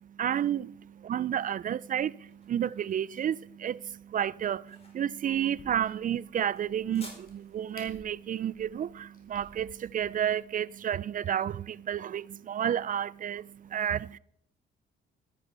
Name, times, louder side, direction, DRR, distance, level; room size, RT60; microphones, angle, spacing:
voice 1, 0.0-14.2, right 10 dB, 45° right, 0.4 m, -31 dB
sound 1, 1.7-10.5, left 2 dB, 30° left, 5.1 m, -56 dB
Crack, 5.3-10.3, left 2 dB, 45° left, 4.2 m, -57 dB
13.0 x 12.0 x 4.6 m
cardioid pair, 90°, 20 cm